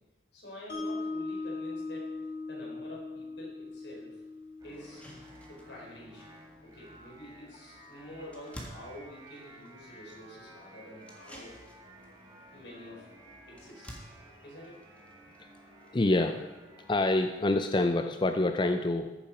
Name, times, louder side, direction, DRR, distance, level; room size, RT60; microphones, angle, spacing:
voice 1, 0.3-2.1 2.5-4.2 4.6-5.0 5.5-6.3 6.6-11.6 12.5-13.1 13.5-13.9 14.4-14.8 15.3-15.4, left 1 dB, 80° left, -3 dB, 4.6 m, -48 dB
Mallet percussion, 0.7-6.9, left 3 dB, 60° left, 2.9 m, -40 dB
sound 1, 3.7-3.8 4.3-4.4 4.7-16.4, equal, 5° left, 1.6 m, -53 dB
sound 2, 4.6-17.7, right 1 dB, 20° right, 2.2 m, -54 dB
voice 2, 15.9-16.4 16.9-19.1, left 2 dB, 25° left, 7 dB, 0.5 m, -26 dB
14.5 x 7.3 x 5.0 m, 1.1 s
head